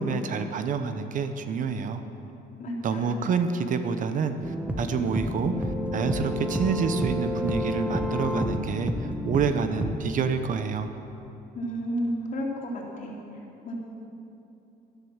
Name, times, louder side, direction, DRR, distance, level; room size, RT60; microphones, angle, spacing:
voice 1, 0.0-2.0 2.8-10.9, right 5 dB, 50° right, 9 dB, 0.9 m, -28 dB
voice 2, 2.6-3.2 11.5-13.1 13.6-13.8, equal, 50° left, -2 dB, 3.3 m, -32 dB
sound 1, 4.4-9.9, equal, 5° right, 1.1 m, -30 dB
13.0 x 10.5 x 7.2 m, 2.8 s
cardioid pair, 110°, 17 cm